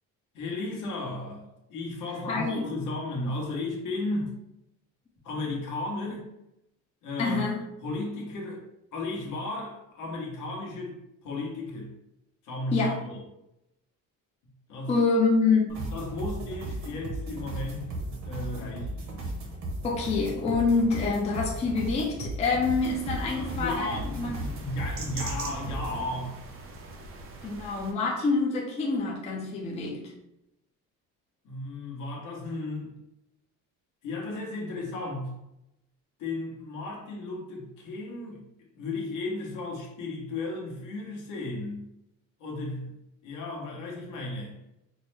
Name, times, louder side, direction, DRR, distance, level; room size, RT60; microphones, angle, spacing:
voice 1, 0.3-4.4 5.2-6.3 7.0-7.4 7.8-8.6 8.9-11.9 12.4-13.2 14.7-15.0 15.7-19.1 23.3-26.5 31.4-32.9 34.0-35.3 36.2-41.9 42.4-42.9 43.2-44.6, left 2 dB, 65° left, -1 dB, 1.1 m, -35 dB
voice 2, 2.3-2.7 7.2-7.6 12.7-13.0 14.9-15.8 19.8-24.3 27.4-30.0, left 4 dB, 20° left, -2 dB, 0.4 m, -26 dB
sound 1, 15.7-26.0, right 1 dB, 55° right, 0.9 m, -36 dB
sound 2, 22.7-27.9, right 3 dB, 40° right, 0.5 m, -42 dB
4.5 x 2.1 x 3.2 m, 0.86 s
cardioid pair, 175°, 33 cm